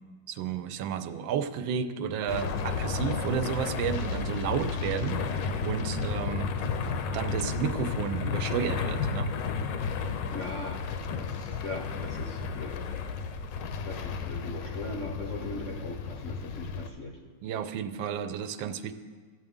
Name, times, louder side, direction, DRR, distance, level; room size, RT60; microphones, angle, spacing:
voice 1, 0.3-6.6 7.1-9.3 17.4-18.9, right 8 dB, 85° right, 10 dB, 1.3 m, -32 dB
sound 1, 2.3-16.9, left 5 dB, 75° left, 1.3 m, -32 dB
voice 2, 10.3-10.8 11.2-12.8 13.8-17.2, left 2 dB, 60° left, 1 dB, 0.8 m, -39 dB
14.0 x 7.9 x 3.6 m, 1.5 s
omnidirectional pair, 2.0 m